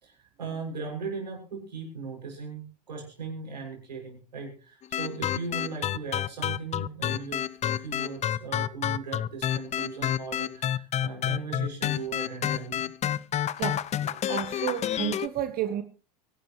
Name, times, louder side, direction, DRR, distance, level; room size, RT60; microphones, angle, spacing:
voice 1, 0.0-12.8, right 4 dB, 85° right, 1 dB, 6.7 m, -38 dB
sound 1, 4.8-15.3, left 10 dB, 30° left, 0.7 m, -29 dB
voice 2, 13.6-15.8, right 11 dB, 45° right, 11 dB, 1.2 m, -32 dB
24.0 x 11.5 x 3.1 m, 0.34 s
hypercardioid pair, 80°, 21 cm